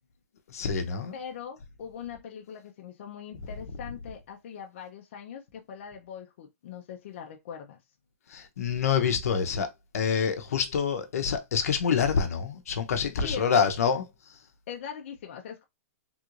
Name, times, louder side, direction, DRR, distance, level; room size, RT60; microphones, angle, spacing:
voice 1, 0.5-1.1 8.3-9.7 9.9-14.0, left 6 dB, 80° left, 0.8 m, -26 dB
voice 2, 1.1-7.8 13.2-13.7 14.7-15.6, left 8 dB, 50° left, 0.6 m, -41 dB
3.5 x 3.1 x 2.5 m
hypercardioid pair, 170°, 8 cm